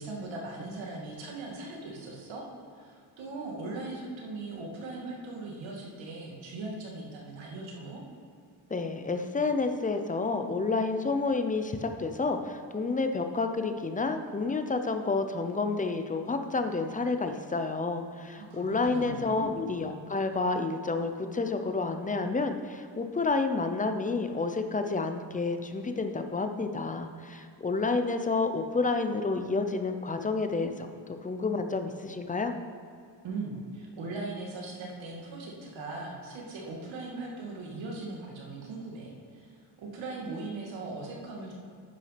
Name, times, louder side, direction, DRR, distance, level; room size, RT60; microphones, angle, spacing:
voice 1, 0.0-2.4 2.7-8.0 18.2-19.6 33.2-41.5, right 3 dB, 85° right, -1 dB, 2.4 m, -39 dB
voice 2, 8.7-32.5, left 3 dB, 15° left, 7 dB, 0.7 m, -30 dB
9.7 x 6.1 x 5.9 m, 2.4 s
cardioid pair, 125°, 45 cm